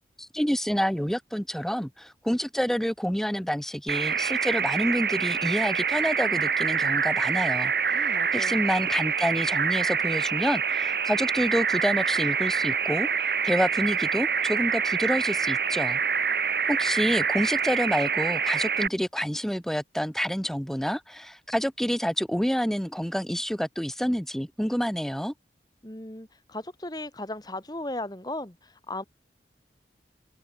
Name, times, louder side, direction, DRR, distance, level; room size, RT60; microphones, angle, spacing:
voice 1, 0.2-13.1 13.4-16.0 16.7-25.3, equal, ahead, 0.9 m, -28 dB
sound 1, 3.9-18.9, right 6 dB, 55° right, 1.7 m, -26 dB
voice 2, 7.9-8.6 25.8-29.0, left 1 dB, 20° left, 2.1 m, -36 dB
open air
head